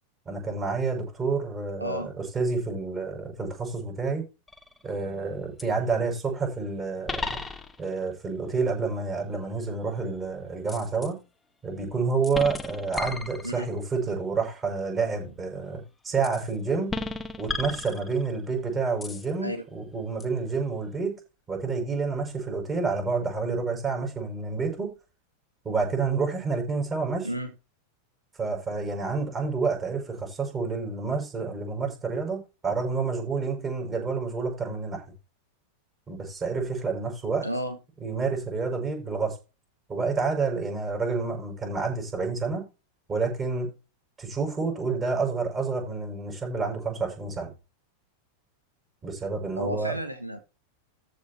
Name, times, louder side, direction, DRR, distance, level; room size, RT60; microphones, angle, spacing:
voice 1, 0.2-4.2 4.8-7.3 7.8-11.2 11.6-16.9 17.4-21.2 21.5-24.9 25.6-27.3 28.4-35.0 36.1-37.4 38.0-39.4 39.9-42.7 43.1-43.7 44.2-47.5 49.0-49.9, right 4 dB, 20° right, 6.5 m, -29 dB
voice 2, 1.8-2.1 13.4-13.7 19.4-19.6 27.2-27.5 37.4-37.8 49.6-50.4, equal, 85° right, 1.6 m, -32 dB
sound 1, 4.5-4.9 5.6-5.7 7.1-8.0 10.7-11.1 12.2-13.8 16.2-16.5 16.9-18.5 19.0-19.3 20.2-20.3, left 3 dB, 10° left, 1.3 m, -34 dB
14.5 x 5.2 x 4.5 m
figure-of-eight pair, 90°, 0 cm